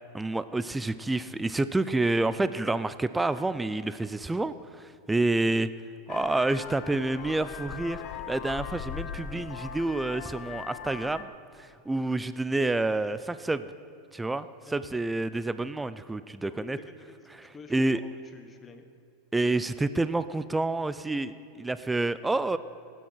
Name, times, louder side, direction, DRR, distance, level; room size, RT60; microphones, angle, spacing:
voice 1, 0.1-5.7 6.1-8.0 8.3-11.3 11.6-13.7 14.1-16.8 17.4-18.0 19.3-22.6, right 2 dB, 10° right, 14 dB, 0.4 m, -28 dB
Vehicle horn car horn honking, 6.1-11.2, left 8 dB, 50° left, 1.0 m, -39 dB
voice 2, 16.5-18.8, left 4 dB, 20° left, 6 dB, 1.2 m, -49 dB
16.0 x 9.1 x 5.7 m, 2.6 s
supercardioid pair, 125°, 0 cm